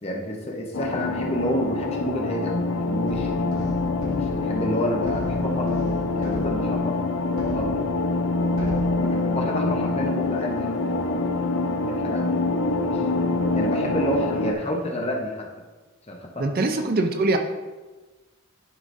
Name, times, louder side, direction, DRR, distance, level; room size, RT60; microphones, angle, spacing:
voice 1, 0.0-3.5 4.1-5.8 6.1-7.1 7.4-7.9 8.6-11.0 11.9-12.4 12.9-13.3 13.5-15.5 16.1-16.7, equal, 30° left, 0 dB, 0.9 m, -29 dB
sound 1, 0.7-14.5, left 3 dB, 75° left, 0.5 m, -25 dB
sound 2, 3.1-8.3 8.6-9.6, right 1 dB, 70° right, 1.1 m, -37 dB
voice 2, 16.4-17.4, right 2 dB, 45° right, 5 dB, 0.5 m, -22 dB
11.0 x 4.9 x 2.7 m, 1.2 s
head